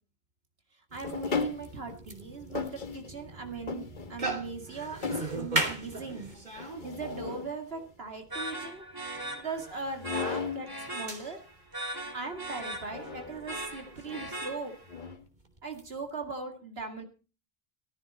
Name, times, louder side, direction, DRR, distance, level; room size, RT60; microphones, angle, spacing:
sound 1, 0.9-16.0, right 2 dB, 45° right, 3.1 m, -39 dB
voice 1, 0.9-6.3 6.8-8.9 9.3-11.4 12.1-14.7 15.6-17.0, right 4 dB, 75° right, 4 dB, 2.4 m, -39 dB
sound 2, 1.0-2.0 2.5-3.3 3.7-4.4 4.8-5.5 6.6-7.5 9.8-10.7 12.9-13.6 14.0-14.3 14.9-15.2, left 4 dB, 50° left, 1.3 m, -36 dB
sound 3, 8.3-15.0, right 1 dB, 20° right, 3.2 m, -40 dB
14.5 x 14.5 x 4.3 m, 0.35 s
omnidirectional pair, 1.0 m